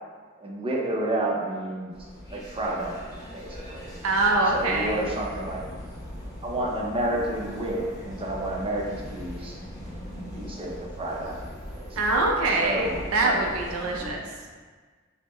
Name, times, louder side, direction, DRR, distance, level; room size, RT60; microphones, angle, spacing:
voice 1, 0.4-2.0 2.3-3.9 4.5-5.6 6.4-9.6 10.3-12.0 12.6-13.6, right 1 dB, 25° right, -2 dB, 0.6 m, -30 dB
sound 1, 1.9-14.1, left 1 dB, 20° left, 0.8 m, -40 dB
voice 2, 4.0-5.1 12.0-14.2, right 2 dB, 80° right, 0 dB, 0.5 m, -24 dB
5.3 x 2.1 x 3.0 m, 1.5 s
head